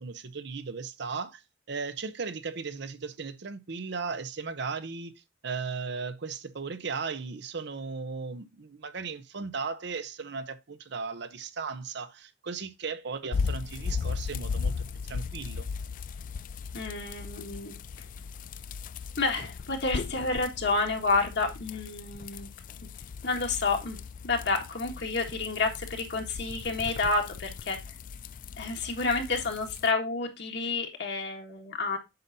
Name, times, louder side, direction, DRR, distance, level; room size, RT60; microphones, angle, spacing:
voice 1, 0.0-1.4 1.7-15.7, right 5 dB, 65° right, 0.7 m, -36 dB
sound 1, 13.3-29.9, left 5 dB, 45° left, 0.3 m, -37 dB
voice 2, 16.7-17.7 19.2-22.5 23.2-24.0 24.2-27.8 28.6-32.0, left 3 dB, 65° left, 1.6 m, -29 dB
7.8 x 5.5 x 2.7 m
head